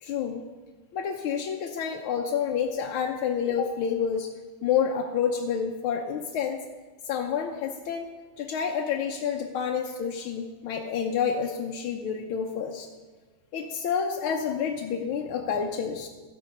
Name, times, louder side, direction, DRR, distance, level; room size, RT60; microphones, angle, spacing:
voice 1, 0.0-0.4 0.9-4.3 4.6-6.6 7.0-8.1 8.4-12.9 13.5-16.1, left 7 dB, 90° left, 2 dB, 1.6 m, -29 dB
15.5 x 6.6 x 5.3 m, 1.4 s
omnidirectional pair, 2.2 m